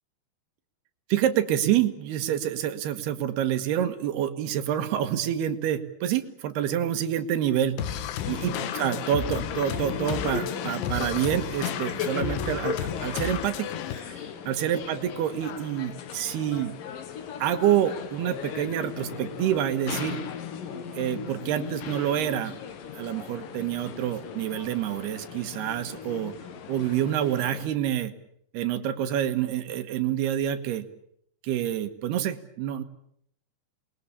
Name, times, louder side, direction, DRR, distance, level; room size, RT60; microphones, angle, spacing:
voice 1, 1.1-8.0 8.3-13.7 14.0-16.7 17.4-20.2 20.9-22.6 22.9-26.3 26.7-28.1 28.5-30.9 31.4-32.8, right 10 dB, 70° right, 8 dB, 3.2 m, -27 dB
sound 1, 7.8-13.9, left 10 dB, 75° left, 3.3 m, -33 dB
sound 2, 8.2-27.7, left 7 dB, 60° left, 3.1 m, -37 dB
27.5 x 21.0 x 8.5 m, 0.69 s
omnidirectional pair, 5.0 m